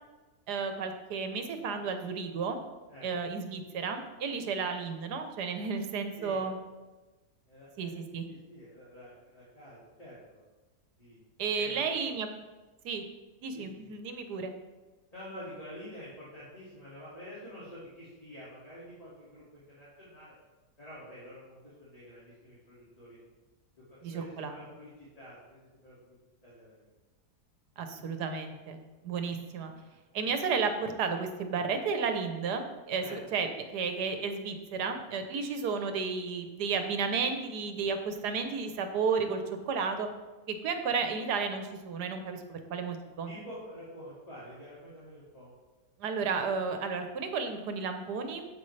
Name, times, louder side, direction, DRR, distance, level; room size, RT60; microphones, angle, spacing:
voice 1, 0.5-2.6 3.0-6.6 7.8-8.3 11.4-12.3 12.8-13.0 13.4-14.5 24.0-24.6 27.8-28.8 29.0-29.7 30.1-40.1 40.5-43.3 46.0-48.5, right 5 dB, 75° right, 7 dB, 1.4 m, -33 dB
voice 2, 6.2-6.5 7.5-8.0 8.3-10.4 11.0-11.2 11.5-11.8 13.5-13.9 15.1-20.3 20.8-23.2 23.9-26.2 26.4-26.9 29.9-30.0 33.0-33.2 43.3-45.5, equal, 20° left, -9 dB, 2.3 m, -48 dB
9.6 x 8.2 x 3.3 m, 1.2 s
omnidirectional pair, 1.8 m